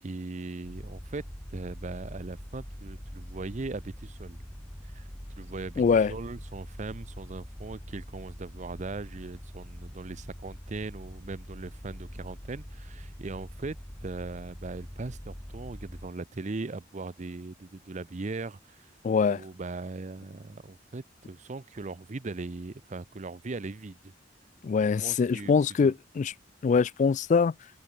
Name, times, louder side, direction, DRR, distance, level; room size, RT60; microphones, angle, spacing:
voice 1, 0.0-1.2 1.5-4.4 4.8-5.1 5.4-5.8 6.1-13.8 14.0-18.9 19.3-24.1 24.8-25.5 25.8-25.9, right 3 dB, 40° right, 0.6 m, -39 dB
sound 1, 0.6-16.1, equal, 5° left, 1.0 m, -44 dB
voice 2, 5.8-6.1 19.0-19.4 24.6-26.3 26.6-27.5, left 5 dB, 40° left, 0.3 m, -23 dB
open air
head